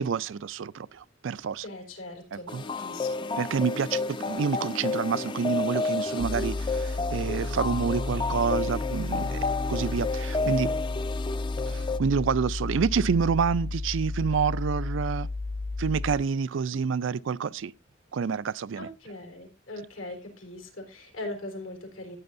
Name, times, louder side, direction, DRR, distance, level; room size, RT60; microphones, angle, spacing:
voice 1, 0.0-1.6 2.5-2.6 3.4-9.4 9.7-10.7 11.7-15.3 15.8-17.7 18.1-18.9, right 6 dB, 70° right, 0.4 m, -28 dB
voice 2, 1.6-2.5 2.8-3.3 18.8-22.2, left 2 dB, 90° left, 4.0 m, -40 dB
sound 1, 2.5-12.0, left 3 dB, 25° left, 0.4 m, -31 dB
sound 2, 6.2-16.2, left 3 dB, 60° left, 1.1 m, -32 dB
14.5 x 8.8 x 2.6 m
head